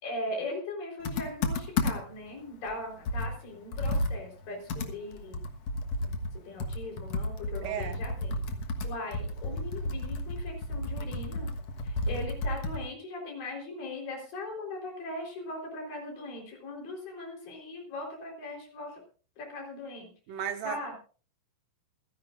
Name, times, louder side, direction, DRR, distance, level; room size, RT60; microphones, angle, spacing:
voice 1, 0.0-5.4 6.0-8.4 8.8-11.5 11.8-19.0 19.4-20.1 20.6-20.9, left 2 dB, 75° left, 1 dB, 5.8 m, -39 dB
Computer keyboard, 1.0-2.2 2.7-2.8 3.1-12.9, left 2 dB, 55° left, 2.1 m, -32 dB
voice 2, 7.6-8.0 20.3-20.8, right 8 dB, 75° right, 7 dB, 3.0 m, -34 dB
27.5 x 10.5 x 2.5 m, 0.39 s
omnidirectional pair, 4.1 m